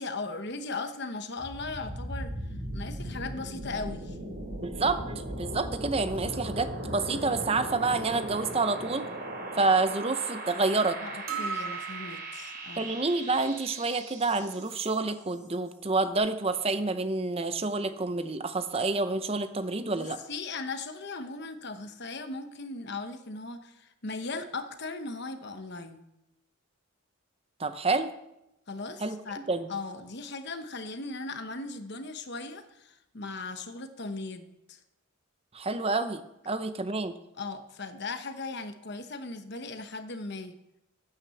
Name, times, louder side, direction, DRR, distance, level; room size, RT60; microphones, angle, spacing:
voice 1, 0.0-2.3 2.7-4.2 11.0-12.9 19.8-26.1 28.7-29.4 29.7-34.8 37.4-40.5, left 3 dB, 50° left, 8 dB, 1.0 m, -38 dB
sound 1, 1.4-15.2, right 1 dB, 50° right, 2.7 m, -38 dB
voice 2, 4.6-9.1 9.6-11.0 12.8-20.2 27.6-28.1 29.0-29.2 29.5-29.7 35.5-37.1, right 3 dB, 25° right, 10 dB, 0.7 m, -28 dB
sound 2, 11.3-12.6, right 6 dB, 70° right, 1.4 m, -36 dB
9.4 x 9.4 x 7.0 m, 0.87 s
head